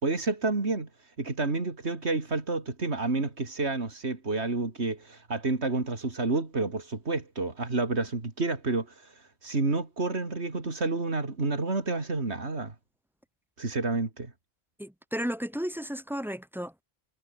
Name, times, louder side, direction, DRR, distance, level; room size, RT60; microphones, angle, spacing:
voice 1, 0.0-12.7 13.6-14.3, right 3 dB, 90° right, 3.3 m, -30 dB
voice 2, 14.8-16.8, equal, ahead, 1.8 m, -33 dB
omnidirectional pair, 1.1 m